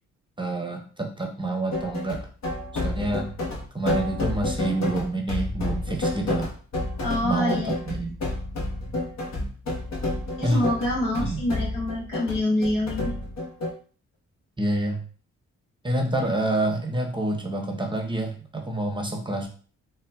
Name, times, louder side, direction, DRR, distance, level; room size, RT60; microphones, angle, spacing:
voice 1, 0.4-2.3 2.7-3.3 3.7-6.5 7.2-8.1 10.4-10.7 11.2-11.4 14.6-15.0 15.8-19.5, right 2 dB, 15° right, 2 dB, 0.7 m, -27 dB
sound 1, 1.7-13.7, left 2 dB, 55° left, 1.0 m, -30 dB
voice 2, 7.0-7.7 8.9-9.0 10.4-13.1, left 1 dB, 80° left, -4 dB, 1.5 m, -26 dB
3.9 x 2.2 x 2.3 m, 0.40 s
supercardioid pair, 55°, 32 cm